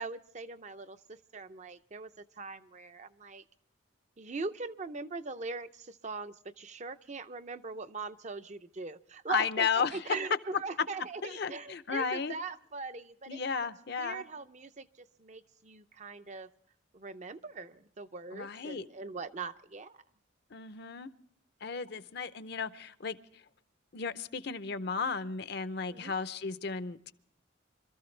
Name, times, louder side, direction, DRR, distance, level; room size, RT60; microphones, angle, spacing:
voice 1, 0.0-3.4 4.2-13.4 14.0-16.5 16.9-20.0 25.9-26.1, right 4 dB, 35° right, 10 dB, 0.6 m, -41 dB
voice 2, 9.3-10.2 11.2-12.4 13.3-14.2 18.3-18.9 20.5-21.1 21.6-23.2 23.9-27.1, left 5 dB, 55° left, 12 dB, 0.7 m, -34 dB
26.0 x 14.0 x 3.2 m, 0.65 s
head